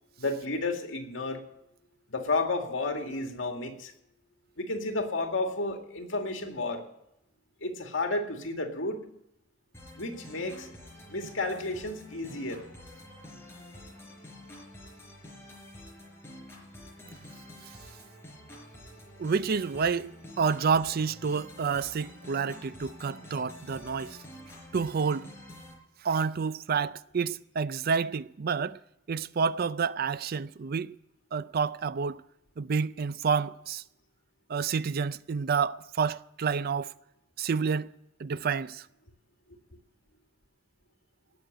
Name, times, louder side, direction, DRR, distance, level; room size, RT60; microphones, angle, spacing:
voice 1, 0.2-1.4 2.1-3.9 4.6-6.8 7.6-9.0 9.9-10.7 11.1-12.6, left 2 dB, 80° left, 2.1 m, -32 dB
sound 1, 9.7-25.7, left 1 dB, 15° left, 4.2 m, -48 dB
voice 2, 19.2-20.1 20.4-24.2 24.7-25.3 26.0-28.8 29.1-30.9 31.3-32.2 32.6-33.8 34.5-36.9 37.4-37.9 38.2-38.9, right 5 dB, 50° right, 0.4 m, -29 dB
19.0 x 6.4 x 9.0 m
head